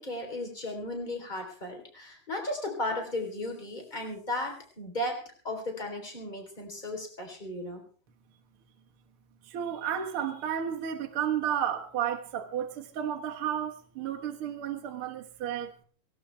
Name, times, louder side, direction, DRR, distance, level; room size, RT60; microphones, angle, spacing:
voice 1, 0.0-5.2 5.4-7.8, left 1 dB, 15° left, 3.5 m, -35 dB
voice 2, 9.4-15.7, right 9 dB, 55° right, 1.6 m, -32 dB
18.0 x 18.0 x 3.4 m
omnidirectional pair, 4.0 m